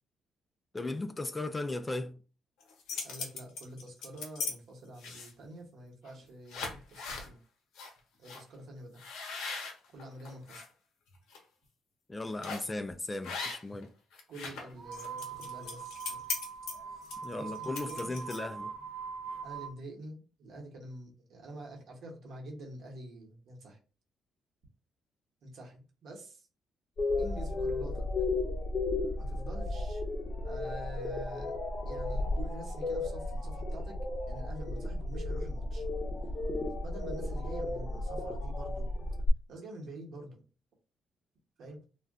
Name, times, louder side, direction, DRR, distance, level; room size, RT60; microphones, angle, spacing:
voice 1, 0.7-2.2 12.1-13.9 17.2-18.7, left 2 dB, 20° left, 0.3 m, -36 dB
sound 1, 2.6-4.5 5.0-5.5 6.0-6.2 6.5-7.3 7.8-7.9 8.3-8.4 9.0-10.7 11.1-11.4 12.4-12.7 13.2-13.8 14.1-18.6, left 4 dB, 90° left, 0.8 m, -39 dB
voice 2, 3.0-7.4 8.2-9.0 9.9-10.6 14.3-16.2 16.9-18.1 19.4-23.8 25.4-26.5 27.2-28.1 29.2-30.0 30.4-31.6 31.8-33.9 34.3-35.9 36.8-38.9 39.5-40.4 41.6-41.8, right 1 dB, 70° right, 1.1 m, -47 dB
sound 2, 14.8-19.7, right 6 dB, 45° right, 0.5 m, -42 dB
sound 3, 27.0-39.3, left 2 dB, 40° left, 0.7 m, -34 dB
2.4 x 2.2 x 3.5 m
cardioid pair, 90°, 0 cm